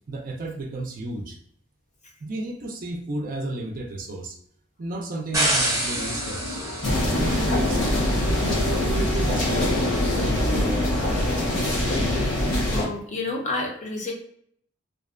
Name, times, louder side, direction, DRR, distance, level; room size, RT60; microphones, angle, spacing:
voice 1, 0.1-1.4 2.2-4.4 4.8-6.6 6.9-7.8 8.4-9.7 10.1-11.0, right 2 dB, 45° right, 3 dB, 0.4 m, -33 dB
sound 1, 5.3-11.3, left 2 dB, 90° left, 0.4 m, -38 dB
sound 2, 5.3-10.5, right 1 dB, 15° right, 0.7 m, -30 dB
sound 3, 6.8-12.8, left 1 dB, 70° left, 0.9 m, -23 dB
voice 2, 12.7-14.1, left 3 dB, 35° left, -1 dB, 0.6 m, -29 dB
2.5 x 2.1 x 2.4 m, 0.66 s
head